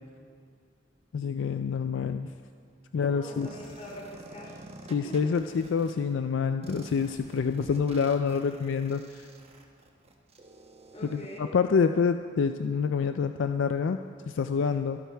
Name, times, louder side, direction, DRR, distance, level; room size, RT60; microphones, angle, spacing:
voice 1, 1.1-2.3 2.9-3.5 4.9-9.3 11.0-14.0 14.3-15.0, left 5 dB, 70° left, 8 dB, 0.4 m, -27 dB
voice 2, 3.1-4.6 4.9-5.3 10.9-11.6, left 1 dB, 35° left, -3 dB, 3.0 m, -43 dB
sound 1, 3.4-5.9 6.6-11.4, right 2 dB, 35° right, 1.0 m, -49 dB
24.0 x 9.0 x 3.4 m, 2.2 s
head